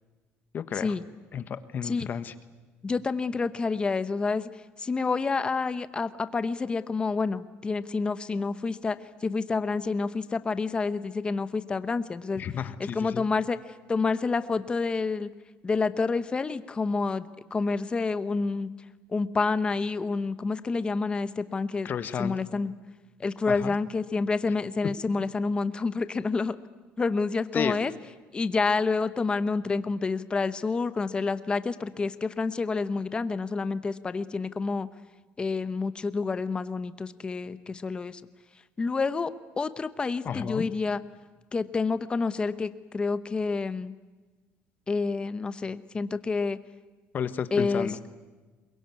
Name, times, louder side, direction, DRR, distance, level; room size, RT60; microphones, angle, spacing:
voice 1, 0.5-0.9 1.3-2.3 12.4-13.2 21.8-22.4 23.5-23.7 27.5-27.8 40.2-40.7 47.1-48.0, left 8 dB, 40° left, 12 dB, 1.3 m, -32 dB
voice 2, 2.8-4.5 4.8-12.4 12.8-13.6 13.9-15.3 15.6-18.7 19.1-21.9 22.2-22.7 23.2-26.6 27.0-27.9 28.3-34.9 35.4-38.2 38.8-41.0 41.5-44.0 44.9-46.6 47.5-47.9, left 4 dB, 20° left, 13 dB, 0.9 m, -28 dB
22.5 x 22.0 x 9.6 m, 1.3 s
cardioid pair, 150°, 5 cm